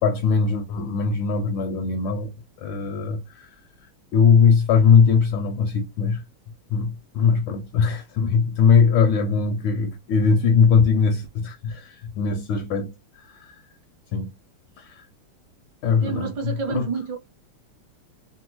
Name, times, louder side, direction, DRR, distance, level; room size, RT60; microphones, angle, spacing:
voice 1, 0.0-2.3 2.6-3.5 4.1-6.2 6.7-12.9 13.3-13.6 14.1-14.3 14.8-15.0 15.8-16.9, left 6 dB, 75° left, 1.1 m, -20 dB
voice 2, 16.0-17.2, right 5 dB, 60° right, 1.4 m, -29 dB
3.4 x 2.1 x 2.9 m
omnidirectional pair, 2.4 m